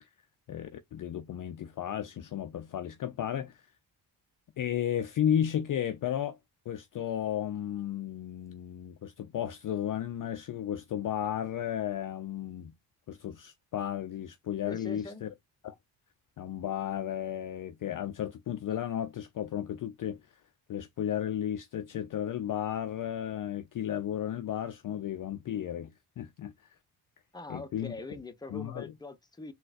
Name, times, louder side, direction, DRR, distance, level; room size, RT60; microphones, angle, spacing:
voice 1, 0.5-3.7 4.6-6.4 6.7-12.7 13.1-15.3 15.6-15.8 16.4-20.4 20.7-25.9 26.2-26.5 27.5-27.9 28.5-28.9, left 10 dB, 45° left, 0.5 m, -34 dB
voice 2, 14.7-15.2 27.3-29.5, left 3 dB, 10° left, 0.7 m, -43 dB
3.8 x 2.3 x 2.4 m
supercardioid pair, 50°, 49 cm